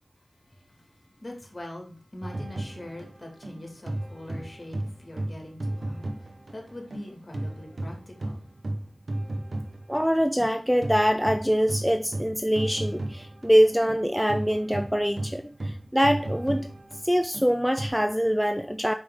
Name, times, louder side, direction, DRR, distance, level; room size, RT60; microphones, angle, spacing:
voice 1, 1.2-6.1 6.5-8.4, left 1 dB, 40° left, 2.1 m, -42 dB
sound 1, 2.2-7.1 7.3-17.9, right 1 dB, 60° right, 0.9 m, -34 dB
voice 2, 9.9-16.7 17.0-18.9, equal, ahead, 0.4 m, -24 dB
5.0 x 5.0 x 3.7 m
cardioid pair, 45°, 0 cm